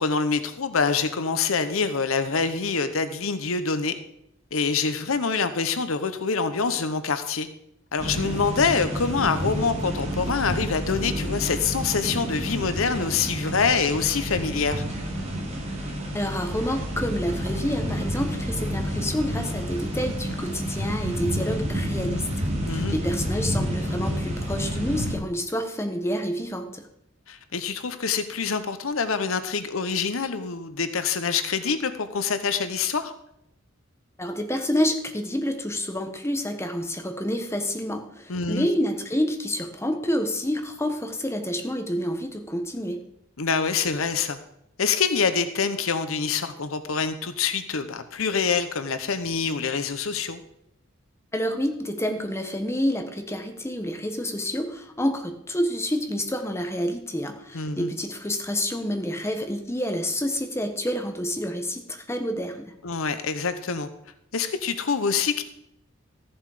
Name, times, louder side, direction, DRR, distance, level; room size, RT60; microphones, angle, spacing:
voice 1, 0.0-3.9 4.5-7.5 7.9-14.8 22.7-23.0 27.3-33.1 38.3-38.7 43.4-44.4 44.8-50.4 57.5-57.9 62.8-63.9 64.3-65.4, left 5 dB, 85° left, 11 dB, 0.9 m, -25 dB
sound 1, 8.0-25.1, equal, 35° right, 2.6 m, -29 dB
voice 2, 16.1-22.3 22.7-26.8 34.2-43.0 51.3-62.7, equal, 15° left, 5 dB, 1.2 m, -28 dB
14.0 x 7.3 x 4.9 m, 0.77 s
head